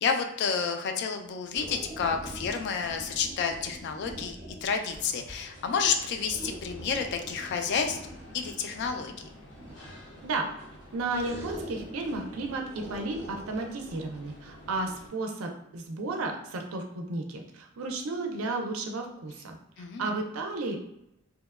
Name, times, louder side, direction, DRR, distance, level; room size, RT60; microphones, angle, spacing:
voice 1, 0.0-8.0 8.3-9.3 19.8-20.2, left 6 dB, 55° left, 6 dB, 0.3 m, -30 dB
sound 1, 1.5-4.9 6.3-10.1 11.1-14.0, right 1 dB, 10° right, 0.6 m, -44 dB
sound 2, 4.8-15.1, left 1 dB, 80° left, 0.8 m, -50 dB
voice 2, 10.9-19.6 20.0-20.8, right 3 dB, 80° right, 3 dB, 0.4 m, -33 dB
2.8 x 2.1 x 2.3 m, 0.82 s
head